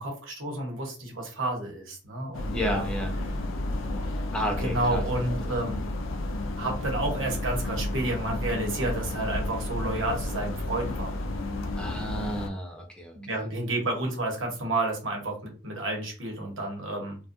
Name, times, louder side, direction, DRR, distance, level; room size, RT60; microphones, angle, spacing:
voice 1, 0.0-2.8 4.6-5.8 6.6-11.1 13.1-17.2, right 2 dB, 85° right, 1 dB, 1.0 m, -30 dB
sound 1, 2.3-12.5, left 2 dB, 85° left, 0.4 m, -32 dB
voice 2, 2.4-3.2 4.3-5.0 5.4-5.8 11.8-13.5, equal, 5° left, 1 dB, 0.4 m, -33 dB
2.6 x 2.2 x 2.4 m, 0.35 s
head